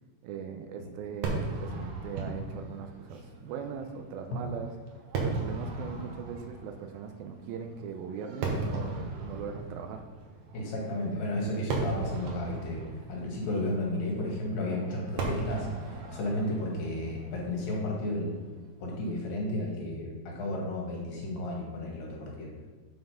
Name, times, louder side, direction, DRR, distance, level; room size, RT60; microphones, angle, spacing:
voice 1, 0.2-4.7 5.2-10.0, right 6 dB, 80° right, 5 dB, 2.3 m, -40 dB
Fireworks, 1.2-18.6, right 3 dB, 60° right, 2.4 m, -37 dB
voice 2, 10.5-12.8 13.1-15.7 16.1-22.5, left 1 dB, 65° left, -2 dB, 3.3 m, -33 dB
7.6 x 5.6 x 5.7 m, 1.4 s
omnidirectional pair, 4.5 m